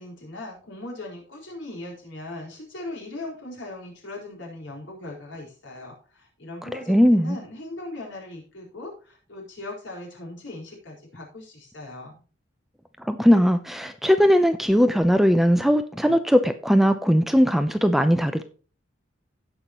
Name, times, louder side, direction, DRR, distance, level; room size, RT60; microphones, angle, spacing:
voice 1, 0.0-12.1, left 2 dB, 75° left, -2 dB, 4.6 m, -39 dB
voice 2, 6.9-7.4 13.0-18.4, equal, ahead, 9 dB, 0.5 m, -19 dB
16.5 x 5.7 x 3.0 m, 0.37 s
head